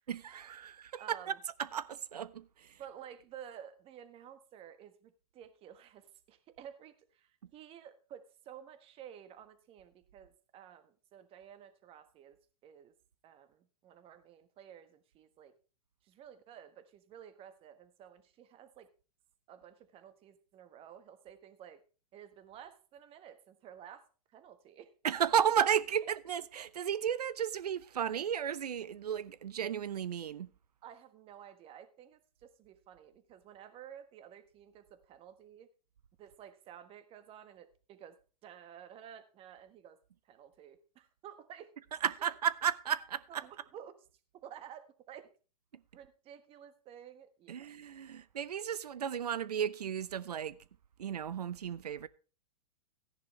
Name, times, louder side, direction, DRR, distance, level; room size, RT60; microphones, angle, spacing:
voice 1, 0.1-2.8 25.0-30.5 41.8-43.6 47.5-50.6 51.0-52.1, right 9 dB, 80° right, 0.7 m, -34 dB
voice 2, 1.0-1.4 2.8-12.9 13.2-15.5 16.0-18.9 19.5-21.8 22.1-24.9 30.8-35.7 36.2-38.2 38.4-40.0 40.2-41.7 42.3-42.4 43.3-43.9 44.4-45.3 45.9-47.7, right 9 dB, 30° right, 1.3 m, -52 dB
13.5 x 10.5 x 3.2 m
hypercardioid pair, 120°, 20 cm